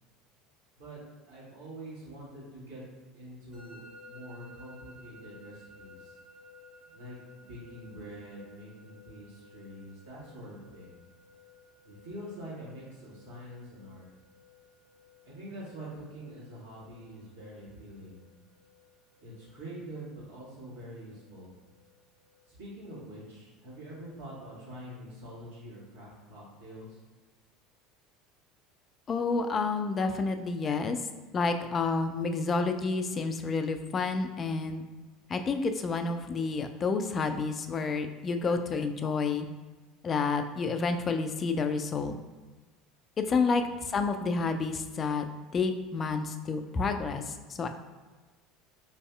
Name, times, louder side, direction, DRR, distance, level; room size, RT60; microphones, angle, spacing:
voice 1, 1.2-2.8 3.1-3.8 4.1-6.1 6.9-10.9 11.8-14.1 15.2-18.2 19.2-21.5 22.5-27.0 43.5-43.7, right 1 dB, 70° right, -7 dB, 1.4 m, -45 dB
Musical instrument, 3.5-22.4, left 2 dB, 40° right, 1.3 m, -56 dB
voice 2, 29.1-31.0 31.3-34.8 35.3-39.5 40.0-42.2 43.2-45.3 45.5-47.7, left 4 dB, 30° left, 7 dB, 0.3 m, -29 dB
4.5 x 2.6 x 2.3 m, 1.3 s
figure-of-eight pair, 70°, 0 cm